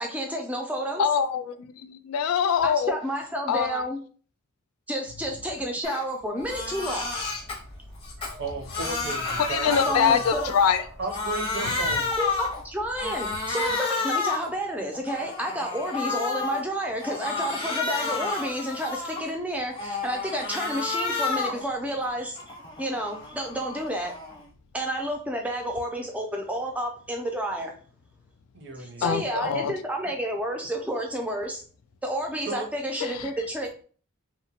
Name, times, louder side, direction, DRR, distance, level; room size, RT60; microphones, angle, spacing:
voice 1, 0.0-1.0 2.6-4.0 4.9-7.2 9.6-10.5 12.2-22.4 22.8-24.1 24.7-27.7 28.8-31.6 32.0-33.8, right 1 dB, 5° right, 0.4 m, -30 dB
voice 2, 1.0-2.9 3.5-3.8 9.4-10.8 29.0-29.7 33.0-33.3, left 7 dB, 90° left, 0.3 m, -24 dB
Crying sobbing, 5.8-6.0 6.4-7.6 8.0-10.8 11.1-12.6 13.0-14.5 14.9-16.6 17.0-19.3 19.7-21.6 22.0-24.4, left 4 dB, 25° left, 0.7 m, -30 dB
Bark, 6.4-13.4, equal, 85° right, 1.0 m, -46 dB
voice 3, 8.4-10.3 11.0-12.1 28.5-29.3 32.5-32.7, right 3 dB, 55° right, 0.6 m, -35 dB
2.9 x 2.1 x 2.8 m
head